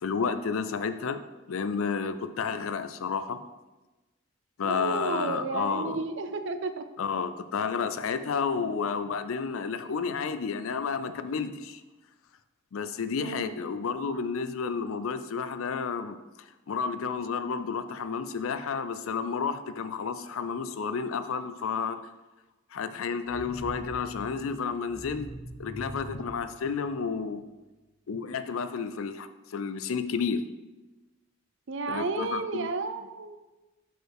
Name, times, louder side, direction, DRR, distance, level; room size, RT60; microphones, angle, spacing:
voice 1, 0.0-1.2 1.5-3.4 4.6-6.0 7.0-11.8 12.7-16.2 16.7-22.0 22.7-25.3 25.6-27.4 28.1-30.4 31.9-32.7, left 5 dB, 80° left, 11 dB, 0.4 m, -31 dB
voice 2, 4.6-6.8 13.2-13.5 31.7-33.4, right 4 dB, 60° right, 9 dB, 0.5 m, -32 dB
sound 1, 23.2-27.3, equal, 5° left, 1.1 m, -43 dB
6.3 x 5.0 x 4.7 m, 1.1 s
head